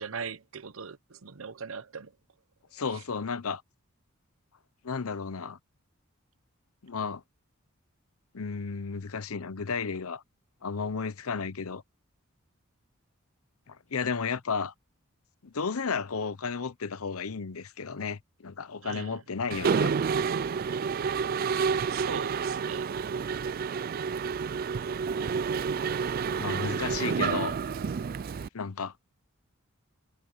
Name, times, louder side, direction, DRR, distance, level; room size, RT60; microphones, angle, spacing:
voice 1, 0.0-2.1 18.8-19.2 21.9-22.9, right 5 dB, 70° right, 0.9 m, -40 dB
voice 2, 2.7-3.6 4.8-5.6 6.8-7.2 8.3-10.2 10.6-11.8 13.7-14.7 15.4-19.9 26.4-27.5 28.5-28.9, left 5 dB, 85° left, 0.8 m, -33 dB
Mechanisms, 19.5-28.5, right 6 dB, 45° right, 0.3 m, -29 dB
head